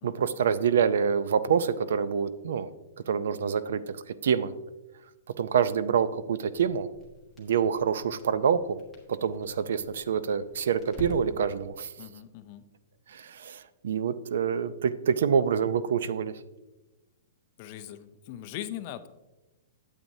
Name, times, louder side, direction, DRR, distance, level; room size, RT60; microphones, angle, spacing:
voice 1, 0.0-2.7 3.1-4.5 5.4-6.9 7.4-8.8 9.1-11.9 13.1-16.4, right 7 dB, 65° right, 15 dB, 0.4 m, -26 dB
Crackle, 6.4-11.7, left 1 dB, ahead, 1.2 m, -47 dB
voice 2, 12.0-12.6 17.6-19.1, left 12 dB, 30° left, 11 dB, 0.4 m, -40 dB
8.9 x 8.0 x 2.7 m, 1.0 s
hypercardioid pair, 170°, 0 cm